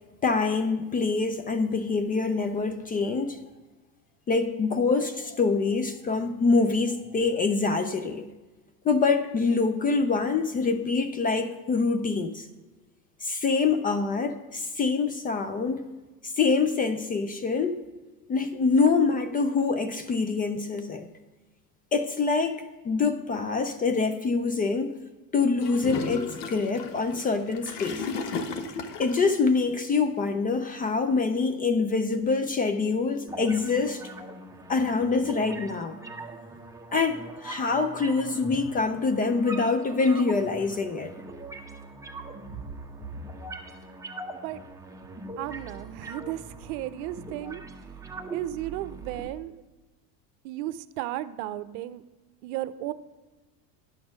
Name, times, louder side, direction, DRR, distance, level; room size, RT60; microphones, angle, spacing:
voice 1, 0.2-3.4 4.3-8.3 8.8-12.5 13.2-15.9 16.2-17.8 18.3-21.1 21.9-25.0 25.3-28.1 29.0-34.0 34.7-36.0 36.9-41.1, left 4 dB, 20° left, 9 dB, 0.4 m, -25 dB
Gurgling / Toilet flush, 25.6-29.3, left 5 dB, 75° left, 1.1 m, -34 dB
sound 1, 33.3-49.3, right 2 dB, 5° right, 0.9 m, -41 dB
voice 2, 45.4-47.6 48.3-49.6 50.4-52.0 52.4-52.9, right 14 dB, 65° right, 14 dB, 0.7 m, -34 dB
10.5 x 6.1 x 5.1 m, 1.2 s
hypercardioid pair, 100°, 49 cm